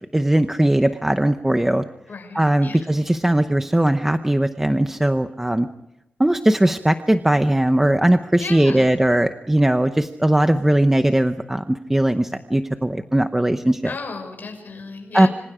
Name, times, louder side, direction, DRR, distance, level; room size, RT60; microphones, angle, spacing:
voice 1, 0.1-1.8 2.3-5.7 6.2-13.9 15.1-15.3, right 1 dB, 10° right, 8 dB, 0.8 m, -19 dB
voice 2, 2.1-2.9 8.4-8.9 13.8-15.3, left 4 dB, 55° left, 4 dB, 6.5 m, -34 dB
26.5 x 26.5 x 5.0 m, 0.88 s
wide cardioid pair, 145°, 4 cm